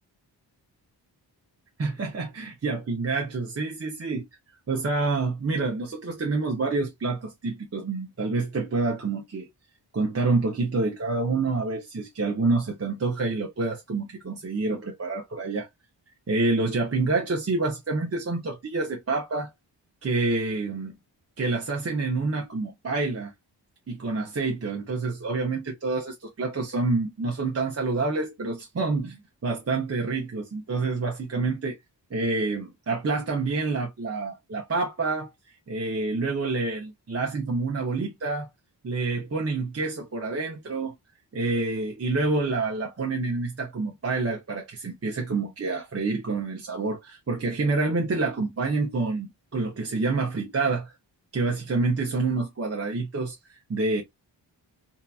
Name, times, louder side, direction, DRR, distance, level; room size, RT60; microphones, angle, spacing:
voice 1, 1.8-4.2 4.7-9.5 9.9-15.7 16.3-19.5 20.0-21.0 21.4-23.3 23.9-31.8 32.1-35.3 35.7-38.5 38.8-40.9 41.3-50.9 51.3-53.4 53.7-54.0, right 3 dB, 35° right, 0.7 m, -27 dB
2.8 x 2.3 x 2.3 m
wide cardioid pair, 90°, 44 cm